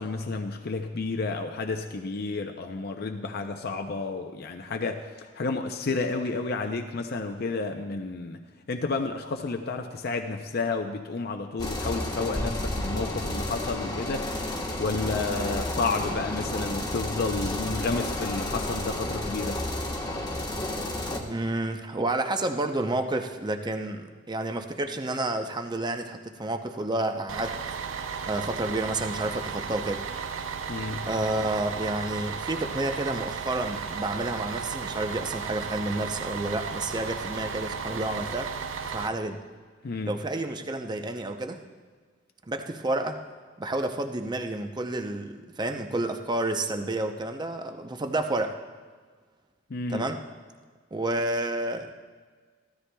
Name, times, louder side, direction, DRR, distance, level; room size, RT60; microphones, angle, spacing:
voice 1, 0.0-8.4 8.7-14.2 14.5-19.6 30.7-31.0 39.8-40.2 49.7-50.0, left 3 dB, 55° left, 5 dB, 0.6 m, -31 dB
sound 1, 11.6-21.2, left 1 dB, 20° left, 1.2 m, -31 dB
voice 2, 21.3-27.6 28.2-30.0 31.0-38.5 38.8-39.4 40.1-41.6 42.5-43.2 43.6-48.6 49.9-50.2 50.9-52.0, right 2 dB, 20° right, 6 dB, 0.6 m, -30 dB
Bus, 27.3-39.1, right 6 dB, 85° right, 0.6 m, -34 dB
15.0 x 13.0 x 2.3 m, 1.5 s
head